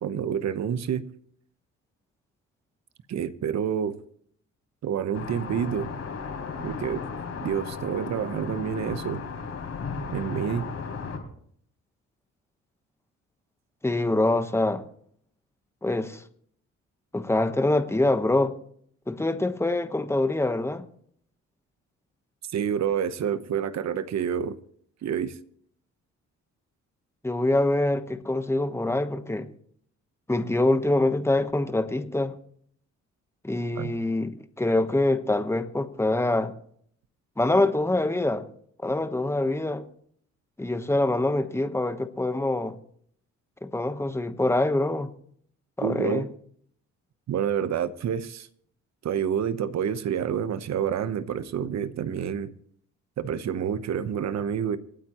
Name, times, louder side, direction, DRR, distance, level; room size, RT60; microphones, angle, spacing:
voice 1, 0.0-1.1 3.1-4.0 4.8-5.9 6.6-7.0 7.4-9.2 10.1-10.6 22.5-24.6 25.0-25.4 33.8-33.9 45.8-46.3 47.3-48.5 49.0-52.5 53.2-54.8, right 8 dB, 60° right, 1.0 m, -28 dB
sound 1, 5.1-11.2, left 5 dB, 55° left, 4.2 m, -35 dB
voice 2, 13.8-14.8 15.8-16.2 17.1-18.5 19.1-20.9 27.2-29.5 30.3-32.3 33.4-36.5 37.4-38.5 38.8-39.9 40.6-42.8 43.6-45.1 45.8-46.3, left 2 dB, 10° left, 1.1 m, -25 dB
27.0 x 9.1 x 3.1 m
cardioid pair, 90°, 30 cm